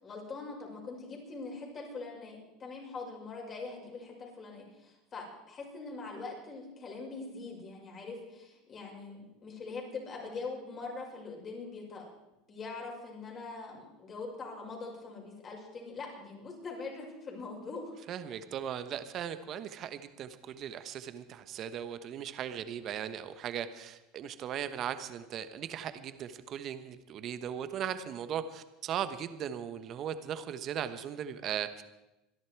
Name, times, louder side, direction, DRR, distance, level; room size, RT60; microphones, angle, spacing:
voice 1, 0.0-12.1 12.5-17.9 18.3-18.4, left 3 dB, 35° left, -1 dB, 6.2 m, -43 dB
voice 2, 18.1-31.8, right 9 dB, 45° right, 11 dB, 1.2 m, -38 dB
26.0 x 11.0 x 4.7 m, 0.96 s
hypercardioid pair, 90°, 0 cm